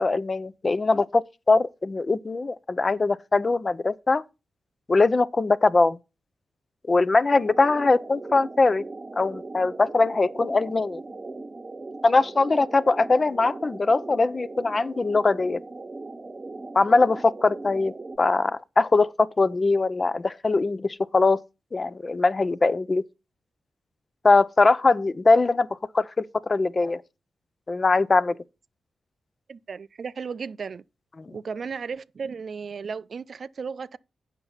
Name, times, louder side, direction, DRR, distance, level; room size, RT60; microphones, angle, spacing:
voice 1, 0.0-4.2 4.9-6.0 6.9-8.8 9.2-11.0 12.0-15.6 16.7-21.4 21.7-23.0 24.2-25.7 25.9-27.0 27.7-28.4 31.2-31.4, left 3 dB, 35° left, 0.5 m, -21 dB
sound 1, 7.3-18.2, right 3 dB, 35° right, 0.9 m, -39 dB
voice 2, 29.5-30.8 31.3-34.0, right 5 dB, 60° right, 0.4 m, -35 dB
8.1 x 5.8 x 5.6 m
cardioid pair, 65°, 0 cm